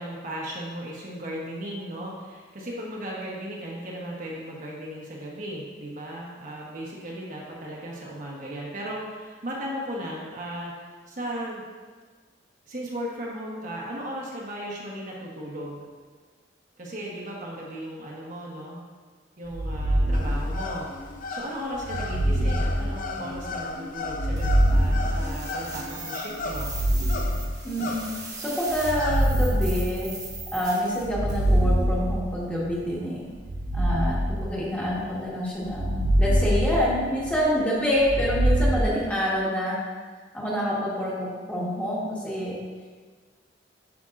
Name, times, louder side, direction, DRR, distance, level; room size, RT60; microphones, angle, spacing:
voice 1, 0.0-10.7 11.1-11.6 12.7-15.9 16.8-18.8 19.4-20.9 21.3-26.7, equal, 45° right, -4 dB, 1.1 m, -36 dB
sound 1, 19.5-21.0 21.8-23.5 24.1-25.9 26.5-28.0 28.7-30.5 31.0-32.7 33.4-35.1 35.6-37.4 38.0-38.8, right 1 dB, 65° right, 0.9 m, -25 dB
sound 2, 20.1-29.3, left 3 dB, 45° left, 0.5 m, -36 dB
sound 3, 24.4-31.6, right 3 dB, 20° right, 1.3 m, -40 dB
voice 2, 27.6-28.1 28.4-30.1 30.5-33.2 33.7-39.8 40.3-42.6, equal, 5° left, -7 dB, 1.4 m, -27 dB
9.6 x 5.2 x 2.5 m, 1.5 s
head